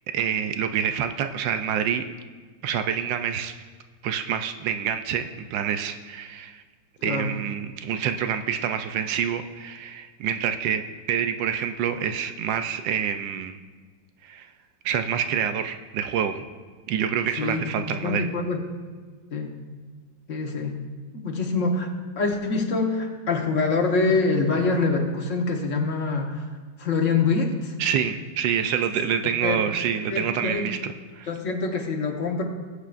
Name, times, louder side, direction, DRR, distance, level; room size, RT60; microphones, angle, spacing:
voice 1, 0.1-2.1 2.6-3.5 4.0-6.6 7.0-13.6 14.2-14.5 14.8-16.4 16.9-18.3 27.8-31.3, right 8 dB, 90° right, 8 dB, 1.3 m, -27 dB
voice 2, 7.0-7.3 17.4-18.6 19.3-19.5 20.3-20.8 21.2-26.5 26.8-27.7 29.4-29.6 30.1-30.7 31.3-32.4, left 3 dB, 45° left, 2 dB, 1.5 m, -25 dB
20.5 x 8.3 x 2.5 m, 1.5 s
omnidirectional pair, 1.9 m